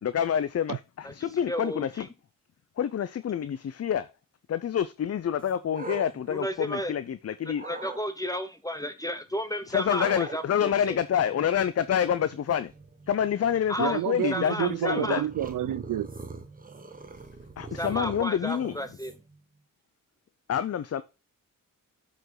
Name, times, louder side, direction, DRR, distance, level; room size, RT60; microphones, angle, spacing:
voice 1, 0.0-2.1 2.8-4.1 4.5-7.6 9.7-12.7 13.1-15.2 17.6-18.7 20.5-21.0, left 9 dB, 45° left, 0.6 m, -27 dB
voice 2, 1.5-2.1 6.3-6.9 7.6-11.0 13.7-14.0 14.3-15.2 17.8-19.1, equal, 10° left, 0.9 m, -33 dB
sound 1, 5.4-7.1 7.5-8.0 9.9-19.4, right 3 dB, 25° right, 1.2 m, -43 dB
voice 3, 13.8-16.1, right 13 dB, 70° right, 0.5 m, -29 dB
7.9 x 5.1 x 3.8 m
cardioid pair, 85°, 34 cm